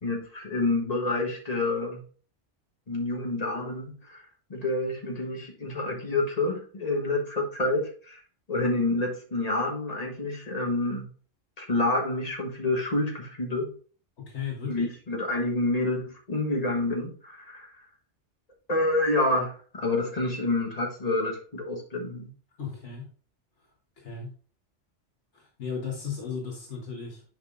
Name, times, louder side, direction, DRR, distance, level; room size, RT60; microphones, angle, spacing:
voice 1, 0.0-2.0 2.9-4.2 4.5-8.2 8.5-11.1 11.6-13.7 14.7-17.8 18.7-22.3, left 2 dB, 35° left, 0 dB, 1.5 m, -28 dB
voice 2, 14.2-14.9 22.6-23.1 23.6-23.7 24.0-24.3 25.3-27.2, left 6 dB, 70° left, -1 dB, 1.7 m, -35 dB
9.5 x 5.3 x 2.6 m, 0.41 s
omnidirectional pair, 1.2 m